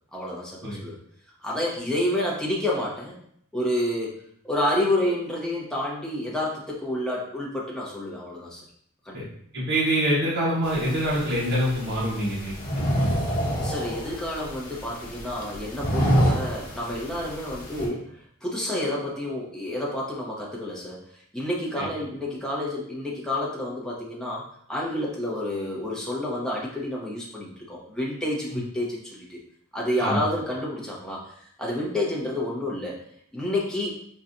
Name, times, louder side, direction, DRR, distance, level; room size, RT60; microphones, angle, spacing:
voice 1, 0.1-1.0 1.4-3.2 3.5-4.1 4.4-8.6 9.0-9.3 13.5-21.0 21.3-29.4 29.7-31.2 31.6-33.0 33.3-34.0, left 1 dB, 5° left, -5 dB, 0.8 m, -29 dB
voice 2, 9.5-13.3 21.8-21.9 30.0-30.2, right 1 dB, 55° right, -8 dB, 1.1 m, -26 dB
sound 1, 10.6-17.9, equal, 50° left, 1.1 m, -28 dB
5.6 x 2.4 x 2.6 m, 0.67 s
head